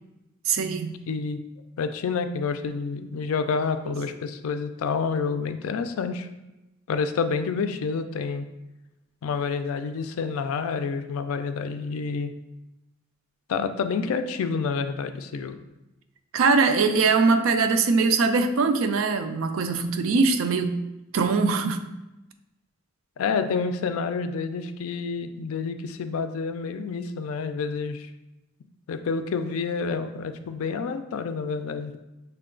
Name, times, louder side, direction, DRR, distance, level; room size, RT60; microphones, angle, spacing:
voice 1, 0.5-1.0 3.9-4.0 16.3-20.8 21.1-21.8, right 4 dB, 70° right, 7 dB, 0.4 m, -22 dB
voice 2, 1.1-1.4 1.8-6.3 6.9-8.5 9.2-12.3 13.5-15.6 23.2-28.1 28.9-31.9, left 5 dB, 75° left, 9 dB, 0.4 m, -28 dB
5.6 x 2.2 x 3.7 m, 0.98 s
head